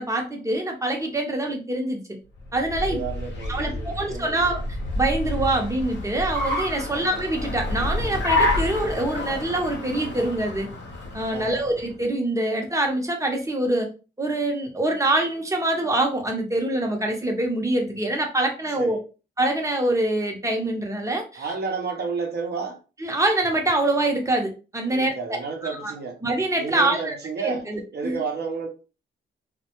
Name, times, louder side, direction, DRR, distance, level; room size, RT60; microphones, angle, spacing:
voice 1, 0.0-2.0 2.5-3.0 3.5-4.6 5.0-10.7 11.1-13.9 14.2-19.0 19.4-21.4 23.0-25.1 25.6-25.9 26.2-27.2 27.4-28.2, right 1 dB, 15° right, 0.7 m, -25 dB
Car, 2.4-11.9, left 2 dB, 55° left, 0.8 m, -29 dB
voice 2, 2.8-4.4 6.8-7.1 11.3-11.6 18.8-19.0 21.3-22.8 24.9-26.2 26.5-27.6 27.9-28.7, right 5 dB, 50° right, 0.6 m, -31 dB
2.1 x 2.1 x 2.9 m
cardioid pair, 90°, 21 cm